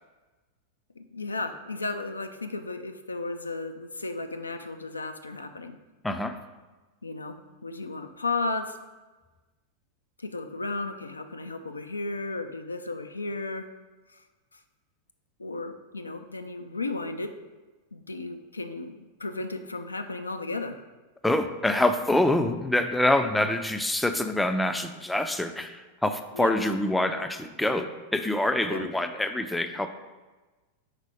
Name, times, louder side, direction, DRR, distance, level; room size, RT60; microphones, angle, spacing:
voice 1, 1.0-5.8 7.0-8.8 10.2-13.7 14.1-14.2 14.5-14.6 15.4-17.3 17.9-20.8 26.3-26.6 28.7-28.9, left 3 dB, 80° left, 7 dB, 0.4 m, -34 dB
voice 2, 6.0-6.4 21.2-29.9, left 1 dB, 5° left, 8 dB, 0.4 m, -26 dB
5.0 x 4.0 x 4.7 m, 1.2 s
figure-of-eight pair, 90°, 0 cm